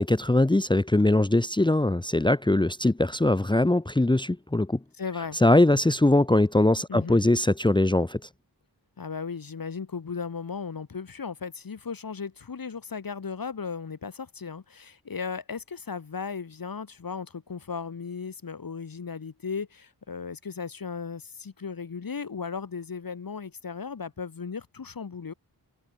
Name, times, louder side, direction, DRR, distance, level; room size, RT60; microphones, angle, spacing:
voice 1, 0.0-4.8 5.3-8.3, left 2 dB, 10° left, 1.2 m, -21 dB
voice 2, 5.0-5.4 6.9-7.2 9.0-25.3, left 5 dB, 60° left, 4.3 m, -36 dB
wide cardioid pair, 120°, 39 cm